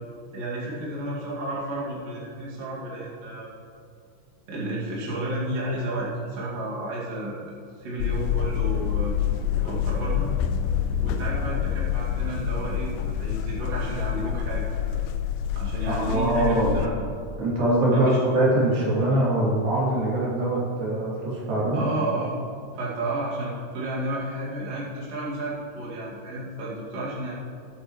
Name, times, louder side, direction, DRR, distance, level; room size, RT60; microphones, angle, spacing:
voice 1, 0.3-3.5 4.5-7.5 7.8-9.1 9.6-10.3 11.0-15.0 15.6-16.9 17.9-18.2 21.7-22.4 22.7-27.3, right 1 dB, 50° right, -6 dB, 3.1 m, -32 dB
sound 1, 8.0-16.9, left 9 dB, 80° left, 2.2 m, -27 dB
voice 2, 15.9-16.8 17.4-21.9, right 1 dB, 85° right, -6 dB, 4.5 m, -23 dB
20.0 x 8.6 x 3.1 m, 2.5 s
omnidirectional pair, 4.0 m